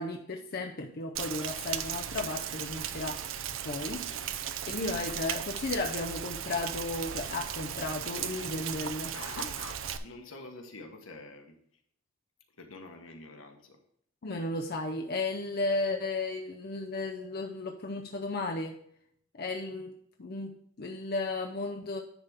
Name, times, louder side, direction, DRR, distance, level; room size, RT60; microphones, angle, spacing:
voice 1, 0.0-3.2 3.6-4.0 4.7-9.1 14.2-18.8 19.4-22.0, left 2 dB, 50° left, 2 dB, 0.6 m, -34 dB
Rain, 1.2-10.0, right 9 dB, 75° right, 0.5 m, -36 dB
voice 2, 3.9-4.3 9.1-11.6 12.6-13.8, left 3 dB, 80° left, 4 dB, 1.3 m, -46 dB
10.0 x 3.6 x 5.7 m, 0.66 s
head